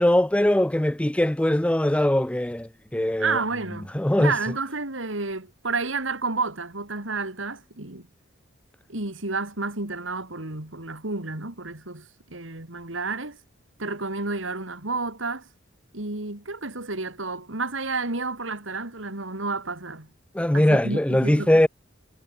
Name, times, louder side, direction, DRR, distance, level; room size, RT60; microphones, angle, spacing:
voice 1, 0.0-3.4 3.9-4.3 20.3-21.7, left 1 dB, 5° left, 0.5 m, -21 dB
voice 2, 3.2-8.1 8.9-13.4 13.8-15.5 15.9-20.1 20.5-21.5, right 3 dB, 75° right, 3.3 m, -31 dB
head